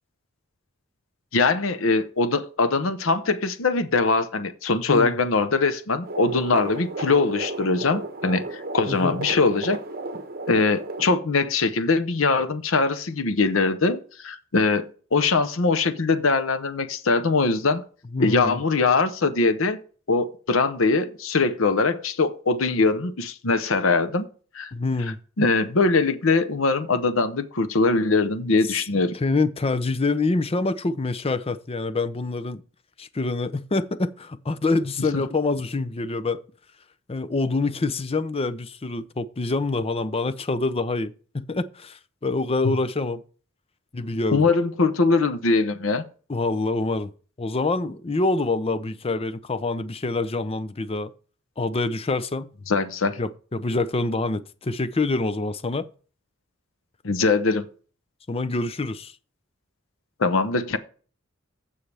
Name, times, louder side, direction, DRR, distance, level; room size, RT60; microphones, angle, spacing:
voice 1, 1.3-9.8 10.5-17.8 18.2-19.8 20.1-24.3 24.5-24.7 25.4-29.1 42.6-42.7 44.3-46.0 52.7-53.2 57.0-57.7 60.2-60.8, left 3 dB, 90° left, 0.9 m, -22 dB
sound 1, 6.0-11.1, right 2 dB, 50° right, 1.2 m, -33 dB
voice 2, 18.1-18.6 24.7-25.2 28.7-28.8 29.1-32.6 33.0-36.4 37.1-43.2 43.9-44.5 46.3-47.1 47.4-51.1 51.6-52.5 53.2-55.9 58.3-59.1, left 3 dB, 30° left, 0.6 m, -26 dB
15.5 x 5.6 x 3.4 m
head